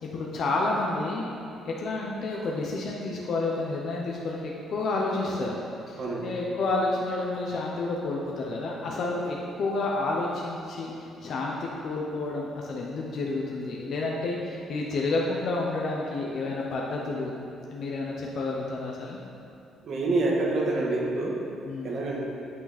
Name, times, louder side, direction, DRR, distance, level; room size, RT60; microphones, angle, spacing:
voice 1, 0.0-1.3 1.6-5.6 5.9-10.9 11.2-17.3 17.7-19.2 21.7-22.0, left 2 dB, 50° left, -3 dB, 1.0 m, -30 dB
voice 2, 19.8-21.3 21.8-22.2, right 2 dB, 45° right, -3 dB, 1.7 m, -27 dB
8.6 x 8.6 x 4.3 m, 2.7 s
cardioid pair, 160°, 0 cm